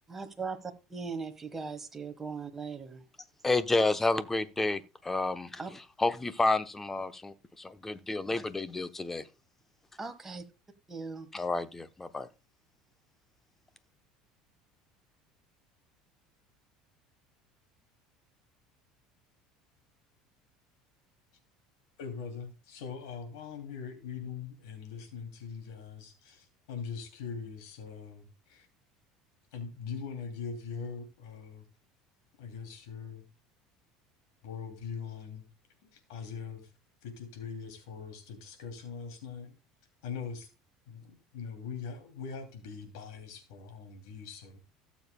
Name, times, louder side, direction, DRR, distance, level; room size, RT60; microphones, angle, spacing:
voice 1, 0.1-3.0 5.6-5.7 10.0-10.5 10.9-11.3, right 4 dB, 15° right, 1.4 m, -39 dB
voice 2, 3.4-5.6 6.0-9.2 11.3-12.3, left 2 dB, 15° left, 0.8 m, -30 dB
voice 3, 22.0-28.7 29.5-31.7 32.4-33.2 34.4-35.5 35.9-36.7 37.0-39.6 40.0-40.5 40.9-44.6, left 6 dB, 90° left, 2.7 m, -42 dB
17.0 x 7.2 x 2.2 m
supercardioid pair, 120°, 2 cm